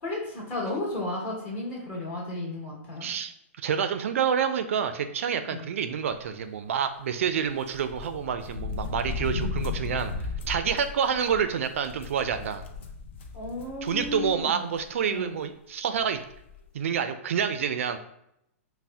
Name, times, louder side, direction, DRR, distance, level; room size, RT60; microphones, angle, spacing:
voice 1, 0.0-3.1 5.5-5.6 9.3-9.6 13.3-14.6 15.1-15.3, left 2 dB, 25° left, -4 dB, 1.2 m, -34 dB
voice 2, 3.0-3.3 3.6-10.1 10.5-12.6 13.8-16.2 16.7-18.0, right 7 dB, 70° right, 9 dB, 0.4 m, -28 dB
sound 1, 7.7-14.4 14.7-14.8 15.9-16.0 16.3-16.6, left 5 dB, 55° left, 0.6 m, -35 dB
4.2 x 2.1 x 3.4 m, 0.77 s
hypercardioid pair, 160°, 8 cm